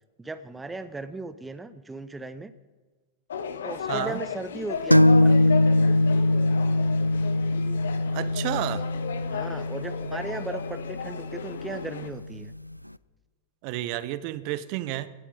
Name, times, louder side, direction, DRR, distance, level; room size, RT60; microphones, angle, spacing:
voice 1, 0.2-2.5 3.6-5.9 9.3-12.5, right 3 dB, 10° right, 12 dB, 0.8 m, -37 dB
sound 1, 3.3-12.1, left 7 dB, 65° left, 1.2 m, -35 dB
voice 2, 3.9-4.2 8.1-8.8 13.6-15.1, right 15 dB, 45° right, 14 dB, 0.9 m, -31 dB
sound 2, 4.9-12.4, left 1 dB, 90° left, 0.4 m, -22 dB
17.5 x 11.5 x 5.4 m, 1.3 s
figure-of-eight pair, 90°, 0 cm